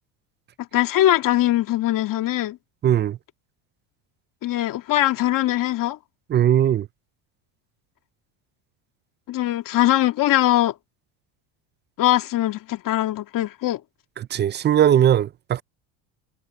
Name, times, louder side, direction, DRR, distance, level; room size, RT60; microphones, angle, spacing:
voice 1, 0.7-2.6 4.4-6.0 9.3-10.7 12.0-13.8, left 14 dB, 50° left, 2.1 m, -21 dB
voice 2, 2.8-3.2 6.3-6.9 14.2-15.6, right 10 dB, 25° right, 0.5 m, -19 dB
supercardioid pair, 110°, 42 cm